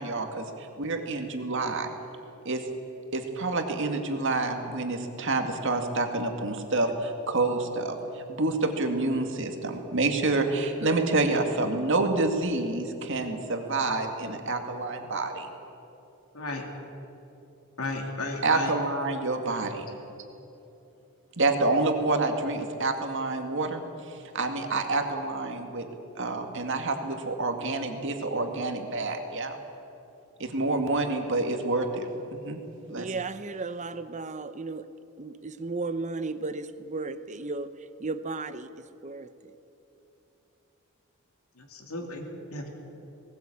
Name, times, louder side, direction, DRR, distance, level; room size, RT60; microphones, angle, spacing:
voice 1, 0.0-1.9 2.4-2.6 3.1-15.5 18.4-19.8 21.4-25.9 26.2-29.6 30.4-32.6 32.9-33.1, right 2 dB, 60° right, 5 dB, 2.2 m, -28 dB
voice 2, 17.8-18.7 41.6-42.3 42.5-42.7, left 2 dB, 85° left, 1 dB, 3.0 m, -34 dB
voice 3, 33.0-34.9 35.2-39.3, right 3 dB, 35° right, 12 dB, 0.8 m, -35 dB
19.5 x 18.0 x 8.6 m, 3.0 s
head